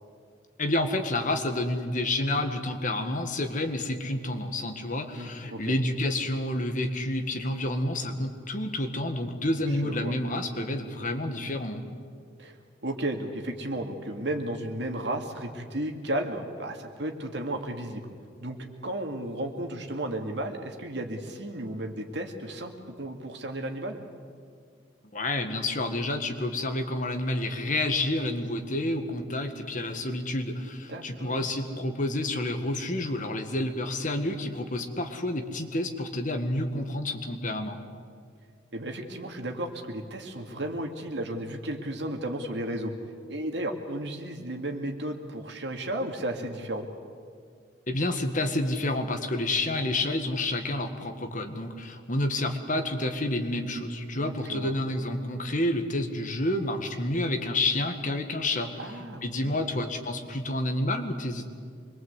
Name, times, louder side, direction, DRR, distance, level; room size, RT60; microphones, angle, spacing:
voice 1, 0.6-11.8 25.1-37.8 47.9-58.7 59.2-61.5, left 1 dB, 40° left, 6 dB, 1.7 m, -29 dB
voice 2, 5.2-5.7 9.7-10.1 12.4-12.6 12.8-18.1 18.4-18.6 18.8-24.0 30.9-31.4 38.7-42.9 43.3-46.8 54.2-54.7 58.8-59.7, right 1 dB, 60° right, 3 dB, 2.4 m, -34 dB
25.0 x 22.0 x 8.2 m, 2.2 s
head